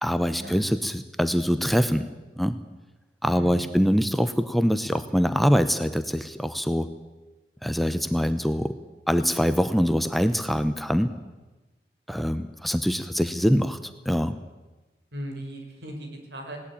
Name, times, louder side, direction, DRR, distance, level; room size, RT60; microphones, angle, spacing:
voice 1, 0.0-2.1 2.4-2.6 3.2-6.9 7.6-8.7 9.1-11.1 12.1-14.4, equal, ahead, 10 dB, 0.8 m, -24 dB
voice 2, 3.2-3.7 15.1-16.6, equal, 85° right, 4 dB, 5.4 m, -38 dB
20.0 x 17.5 x 8.8 m, 1.1 s
head